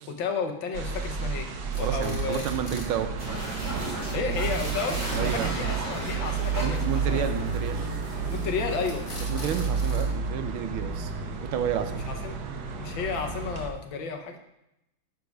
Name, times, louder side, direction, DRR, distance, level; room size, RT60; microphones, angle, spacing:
voice 1, 0.1-1.5 1.7-2.5 4.1-6.8 7.1-7.3 8.3-9.1 12.1-12.4 12.8-14.4, left 5 dB, 65° left, 4 dB, 1.6 m, -32 dB
sound 1, 0.7-1.1 1.5-3.0 3.3-3.4 3.6-3.7 4.0-4.1 4.3-5.3 8.1-8.5 8.8-10.0, left 2 dB, 30° left, 1.3 m, -43 dB
sound 2, 0.7-13.7, right 5 dB, 60° right, 1.3 m, -31 dB
voice 2, 1.8-3.3 5.1-5.6 6.6-7.9 9.3-12.0, right 9 dB, 75° right, 8 dB, 1.6 m, -31 dB
sound 3, 3.2-10.1, right 1 dB, 30° right, 3.1 m, -36 dB
9.6 x 4.7 x 5.2 m, 0.85 s
omnidirectional pair, 2.3 m